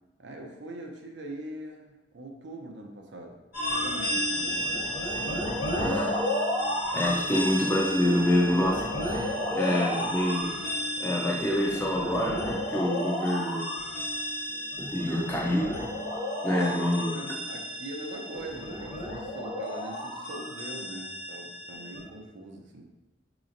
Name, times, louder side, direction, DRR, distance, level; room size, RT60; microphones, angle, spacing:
voice 1, 0.2-3.4 3.7-4.9 5.1-5.8 9.6-9.9 16.5-16.7 17.0-22.9, right 1 dB, 75° right, 2 dB, 0.6 m, -42 dB
sound 1, 3.5-22.0, left 1 dB, 50° left, 1.1 m, -32 dB
voice 2, 5.8-6.1 6.9-10.5 11.0-13.7 14.8-15.7 16.4-17.1, left 1 dB, 10° left, -3 dB, 0.4 m, -27 dB
4.2 x 3.0 x 2.5 m, 1.1 s
head